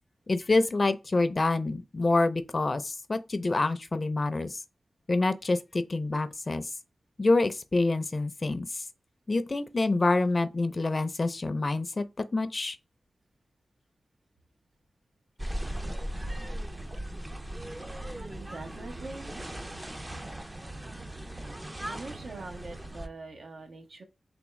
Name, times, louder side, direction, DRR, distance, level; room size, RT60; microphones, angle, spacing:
voice 1, 0.3-4.6 5.1-6.7 7.2-8.8 9.3-12.8, left 2 dB, 40° left, 0.4 m, -27 dB
sound 1, 15.4-23.1, right 1 dB, 20° right, 0.4 m, -38 dB
voice 2, 18.1-19.3 21.9-24.0, right 3 dB, 80° right, 0.8 m, -43 dB
3.5 x 3.4 x 3.1 m
wide cardioid pair, 80°, 0 cm